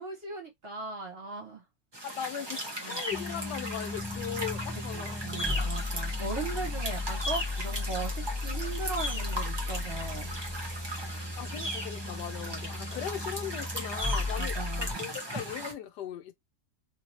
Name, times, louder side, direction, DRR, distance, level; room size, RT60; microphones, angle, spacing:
voice 1, 0.0-1.6 2.8-3.0 4.9-10.3 12.5-12.6 14.4-15.1, right 3 dB, 40° right, 1.3 m, -38 dB
sound 1, 1.9-15.7, right 1 dB, 20° right, 1.0 m, -37 dB
voice 2, 2.0-5.7 11.0-16.3, left 10 dB, 90° left, 1.3 m, -39 dB
sound 2, 3.1-14.9, left 3 dB, 5° left, 0.5 m, -35 dB
3.2 x 2.9 x 2.9 m
omnidirectional pair, 1.8 m